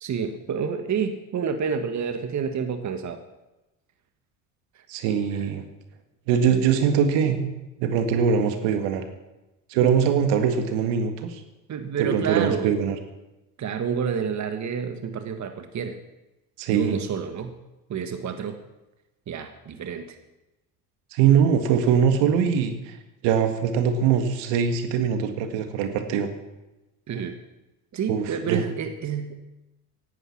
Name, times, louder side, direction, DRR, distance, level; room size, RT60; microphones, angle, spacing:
voice 1, 0.0-3.2 4.7-4.8 11.7-12.7 13.6-16.0 16.7-17.5 17.9-18.6 19.3-20.2 27.1-27.4 27.9-29.5, right 6 dB, 40° right, 8 dB, 1.5 m, -29 dB
voice 2, 4.9-5.6 6.3-7.5 7.8-9.0 9.7-11.4 12.0-13.0 16.6-17.0 21.1-22.9 23.2-26.3 28.1-28.6, right 7 dB, 70° right, 7 dB, 2.0 m, -22 dB
16.0 x 11.5 x 5.9 m, 1.0 s
hypercardioid pair, 70°, 45 cm